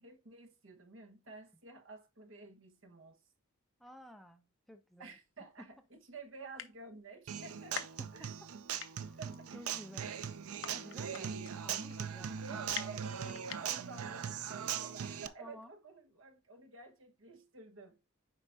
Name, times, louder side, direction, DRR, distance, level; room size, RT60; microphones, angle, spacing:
voice 1, 0.0-3.2 5.0-7.8 8.1-8.3 9.2-9.6 10.8-11.4 12.3-13.1 13.5-18.0, right 4 dB, 60° right, 1.2 m, -51 dB
voice 2, 3.8-5.2 5.6-5.7 7.8-8.5 9.0-9.2 9.5-10.1 10.6-13.0 15.4-15.7, left 1 dB, ahead, 0.5 m, -54 dB
sound 1, 5.1-5.2 5.8-5.9 6.1-6.2 6.4-7.1 7.4-8.5 8.8-14.0, left 8 dB, 60° left, 0.7 m, -45 dB
Human voice / Acoustic guitar, 7.3-15.3, right 8 dB, 85° right, 0.5 m, -40 dB
7.5 x 5.0 x 2.6 m
head